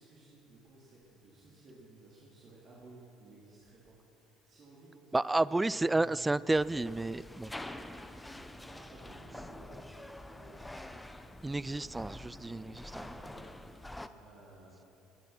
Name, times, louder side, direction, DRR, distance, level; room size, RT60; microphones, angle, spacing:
voice 1, 0.0-6.1 8.2-10.9 11.1-12.0 12.4-14.8, right 2 dB, 45° right, -6 dB, 3.2 m, -56 dB
voice 2, 5.1-7.5 11.4-12.7, right 2 dB, 15° right, 18 dB, 0.3 m, -30 dB
sound 1, 6.5-14.1, left 1 dB, 10° left, 0.8 m, -47 dB
20.0 x 9.9 x 6.0 m, 3.0 s
hypercardioid pair, 60°, 0 cm